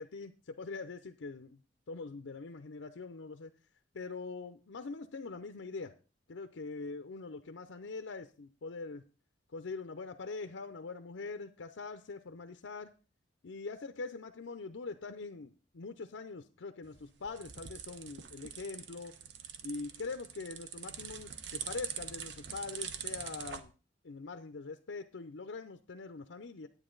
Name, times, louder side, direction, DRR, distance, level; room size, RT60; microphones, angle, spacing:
voice 1, 0.0-1.6 1.9-3.5 3.9-5.9 6.3-9.0 9.5-12.9 13.4-19.1 19.6-23.7 24.0-26.7, left 4 dB, 85° left, 9 dB, 0.6 m, -43 dB
sound 1, 16.8-23.6, right 8 dB, 65° right, 0.8 m, -44 dB
9.9 x 8.9 x 3.8 m, 0.34 s
head